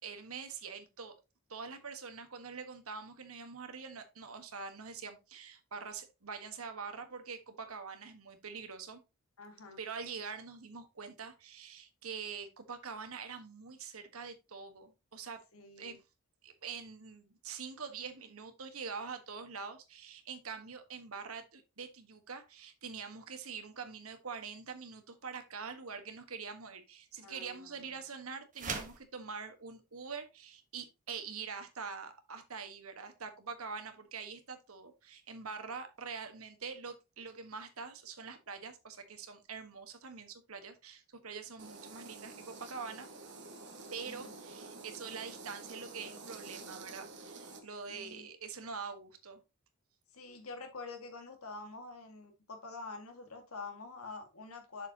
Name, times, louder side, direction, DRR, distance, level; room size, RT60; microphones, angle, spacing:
voice 1, 0.0-1.1 1.5-9.0 9.8-15.4 15.8-16.0 16.4-43.1 43.9-49.4, right 5 dB, 80° right, 1.5 m, -45 dB
voice 2, 9.4-9.8 15.5-16.0 27.2-27.7 44.0-44.4 47.9-48.3 50.1-54.9, left 3 dB, 80° left, 2.0 m, -47 dB
sound 1, 28.5-29.1, right 5 dB, 35° right, 1.3 m, -38 dB
sound 2, 41.6-47.6, right 3 dB, 55° right, 1.5 m, -49 dB
7.4 x 6.8 x 2.9 m
head